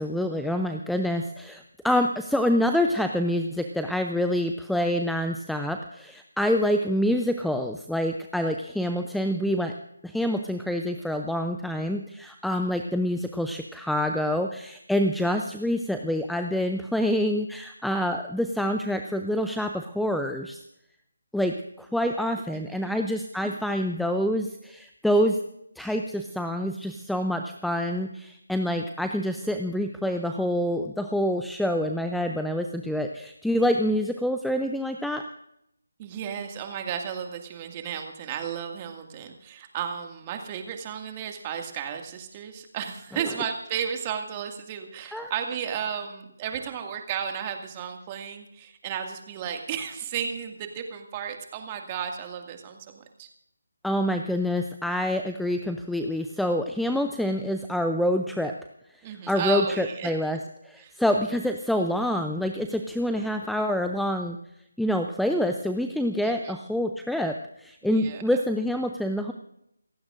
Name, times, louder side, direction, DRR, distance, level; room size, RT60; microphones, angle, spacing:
voice 1, 0.0-9.7 10.0-20.6 21.3-25.4 25.8-35.2 45.1-45.3 53.8-58.6 59.3-60.4 60.6-64.4 64.8-69.3, equal, ahead, 5 dB, 0.6 m, -26 dB
voice 2, 22.5-22.9 23.4-23.5 36.0-53.3 59.0-60.1 60.8-61.2 66.2-66.5 67.9-68.2, right 8 dB, 20° right, 4 dB, 2.1 m, -34 dB
28.5 x 15.5 x 2.6 m, 0.79 s
figure-of-eight pair, 155°, 0 cm